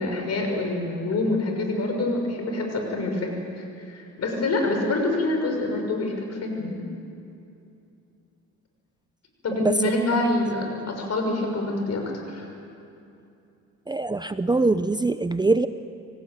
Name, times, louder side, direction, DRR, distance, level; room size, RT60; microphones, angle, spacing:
voice 1, 0.0-3.3 3.6-6.9 9.4-12.5, left 2 dB, 55° left, 3 dB, 6.3 m, -26 dB
voice 2, 13.9-15.7, right 2 dB, 15° right, 11 dB, 0.7 m, -23 dB
26.5 x 17.5 x 9.5 m, 2.7 s
cardioid pair, 90°, 30 cm